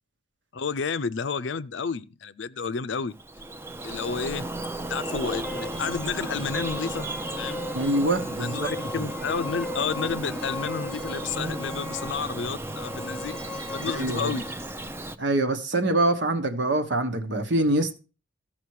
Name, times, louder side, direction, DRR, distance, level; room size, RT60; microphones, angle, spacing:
voice 1, 0.5-3.1 3.8-4.5 4.8-7.1 7.4-7.6 8.4-13.4 13.7-14.5, left 5 dB, 75° left, 0.5 m, -31 dB
Bird vocalization bird call bird song, 3.1-15.2, right 2 dB, 15° right, 0.5 m, -35 dB
sound 1, 4.8-14.8, left 3 dB, 5° left, 0.9 m, -39 dB
voice 2, 7.7-8.7 13.8-14.4 15.2-17.9, right 1 dB, 70° right, 1.3 m, -24 dB
14.5 x 6.0 x 4.8 m
head